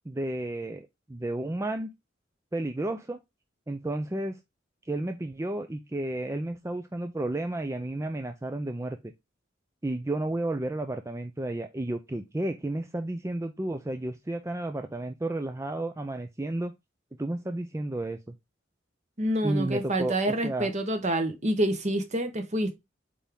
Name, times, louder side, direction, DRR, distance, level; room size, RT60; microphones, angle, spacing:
voice 1, 0.0-1.9 2.5-3.2 3.7-4.4 4.8-9.1 9.8-16.7 17.2-18.4 19.4-20.7, right 1 dB, 15° right, 0.5 m, -32 dB
voice 2, 19.2-22.7, right 1 dB, 40° right, 1.2 m, -27 dB
8.4 x 3.5 x 3.7 m
head